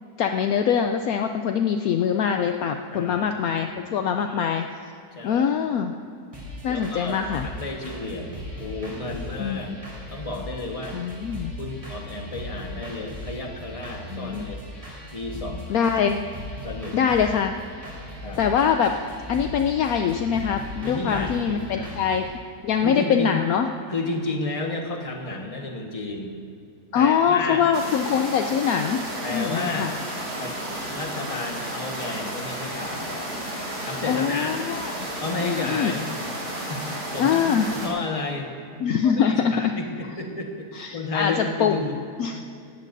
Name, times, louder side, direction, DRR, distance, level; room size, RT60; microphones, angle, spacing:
voice 1, 0.2-4.7 5.2-5.9 6.6-7.5 9.4-9.8 10.9-11.5 14.1-14.5 15.7-16.2 16.9-17.5 18.4-19.0 19.3-22.3 22.6-23.7 26.9-29.0 29.3-29.9 34.1-35.1 35.4-35.9 37.2-37.7 38.8-39.7 40.7-41.8 42.2-42.4, left 7 dB, 70° left, 5 dB, 1.0 m, -23 dB
voice 2, 2.9-4.0 4.3-4.5 5.1-5.5 6.7-9.7 10.1-11.0 11.6-14.6 15.1-15.9 16.6-17.1 18.2-18.4 20.8-22.0 22.8-23.4 23.9-26.3 26.9-27.7 29.2-29.9 30.4-30.5 30.9-33.2 33.8-34.6 35.2-36.1 36.7-38.5 39.0-42.0, left 2 dB, 25° left, 1 dB, 1.3 m, -32 dB
sound 1, 6.3-22.3, left 1 dB, 20° right, 3.8 m, -38 dB
sound 2, 27.7-37.9, right 1 dB, 65° right, 4.3 m, -32 dB
18.0 x 15.5 x 2.7 m, 2.6 s
omnidirectional pair, 1.7 m